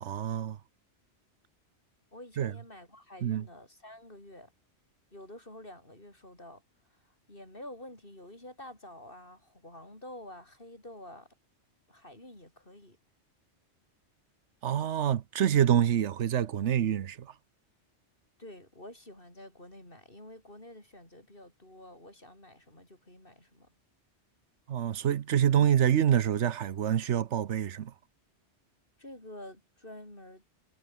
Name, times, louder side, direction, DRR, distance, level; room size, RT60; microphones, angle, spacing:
voice 1, 0.0-0.6 2.4-2.5 3.2-3.4 14.6-17.3 24.7-27.9, right 9 dB, 85° right, 1.1 m, -26 dB
voice 2, 2.1-4.5 5.1-11.4 11.9-13.0 18.4-23.7 29.0-30.5, left 1 dB, 50° left, 8.0 m, -49 dB
omnidirectional pair, 1.2 m